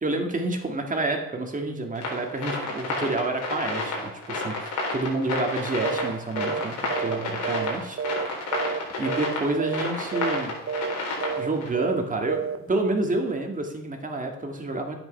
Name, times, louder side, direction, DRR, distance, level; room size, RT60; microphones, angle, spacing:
voice 1, 0.0-8.0 9.0-10.6 11.4-15.0, right 2 dB, 25° right, 3 dB, 2.0 m, -29 dB
sound 1, 1.9-11.7, left 2 dB, 80° left, 4.2 m, -31 dB
sound 2, 5.8-6.1 6.4-6.6 6.9-8.3 8.5-8.8 9.0-9.3 9.6-9.9 10.1-10.4 10.7-10.9 11.2-11.5 11.7-12.0 12.3-12.6, right 6 dB, 45° right, 0.7 m, -29 dB
9.9 x 8.9 x 5.5 m, 0.88 s
cardioid pair, 90°, 30 cm